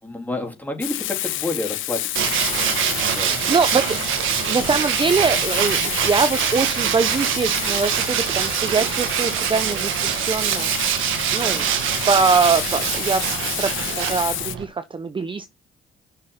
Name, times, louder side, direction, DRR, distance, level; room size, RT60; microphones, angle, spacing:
voice 1, 0.0-2.2 2.5-3.4, left 2 dB, 10° left, 3.5 m, -30 dB
Frying (food), 0.8-14.6, left 14 dB, 80° left, 0.7 m, -30 dB
Tools, 2.2-14.7, right 9 dB, 85° right, 1.4 m, -24 dB
voice 2, 3.2-3.9 4.5-10.7 11.3-11.7 12.1-13.2 13.6-13.7 14.0-15.5, right 4 dB, 25° right, 0.7 m, -22 dB
6.6 x 6.4 x 5.9 m
cardioid pair, 90°, 20 cm